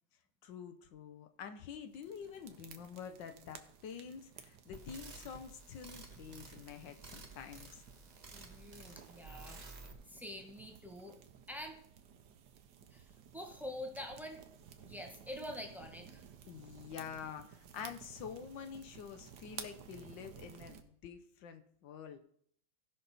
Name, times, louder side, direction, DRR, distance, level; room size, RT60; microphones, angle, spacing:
voice 1, 0.4-7.8 16.5-22.2, left 7 dB, 70° left, 7 dB, 1.4 m, -47 dB
sound 1, 1.9-20.8, right 8 dB, 65° right, 1.3 m, -55 dB
sound 2, 4.7-9.9, right 3 dB, 40° right, 1.5 m, -53 dB
voice 2, 8.3-9.6 10.1-11.2 11.5-11.8 12.9-14.4 14.8-16.2, left 1 dB, ahead, 3 dB, 0.4 m, -46 dB
16.0 x 5.8 x 4.1 m, 0.65 s
omnidirectional pair, 2.2 m